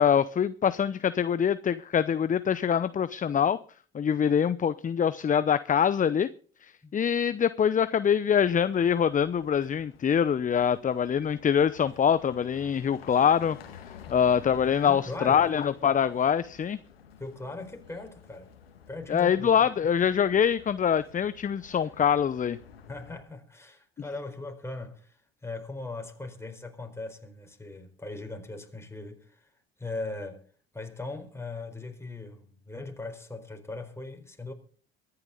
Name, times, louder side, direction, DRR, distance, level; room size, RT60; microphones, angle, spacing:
voice 1, 0.0-6.3 6.6-16.8 19.1-22.6, left 8 dB, 25° left, 0.7 m, -24 dB
sound 1, 8.3-23.2, left 7 dB, 90° left, 1.8 m, -51 dB
voice 2, 14.8-15.4 17.2-18.5 18.9-19.5 22.9-25.2 25.4-29.5 29.8-30.4 30.7-34.5, left 2 dB, 10° left, 4.5 m, -39 dB
23.5 x 9.8 x 3.9 m
hypercardioid pair, 60°, 29 cm